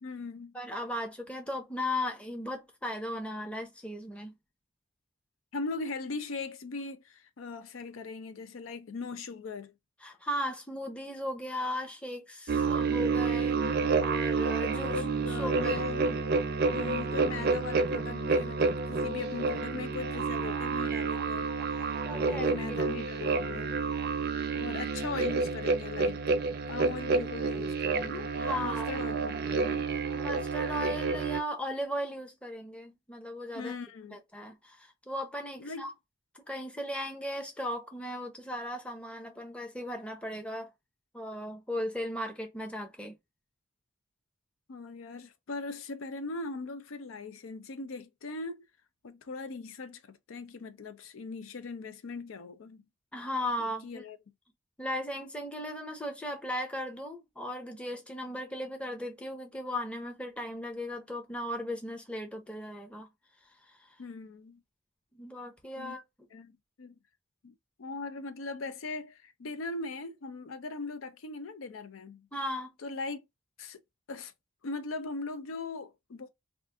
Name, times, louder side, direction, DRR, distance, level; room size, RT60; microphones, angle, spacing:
voice 1, 0.0-0.5 5.5-9.7 14.7-16.3 16.7-21.9 22.2-23.8 24.5-26.3 26.7-29.9 33.5-34.2 35.6-35.9 44.7-48.6 49.0-52.8 53.6-54.2 64.0-64.6 65.8-66.0 66.3-66.9 67.4-72.3 72.8-73.2 73.6-73.8 74.1-74.3 74.6-76.3, left 3 dB, 80° left, 0.5 m, -40 dB
voice 2, 0.5-4.3 10.0-13.7 14.0-15.9 22.0-23.3 28.4-29.0 30.1-33.7 34.1-35.9 36.5-40.7 41.1-43.1 53.1-54.0 54.8-63.1 63.7-63.9 65.1-66.3 72.3-72.7, left 1 dB, 5° left, 0.6 m, -37 dB
sound 1, 12.5-31.4, right 4 dB, 50° right, 0.5 m, -29 dB
2.5 x 2.4 x 3.5 m
head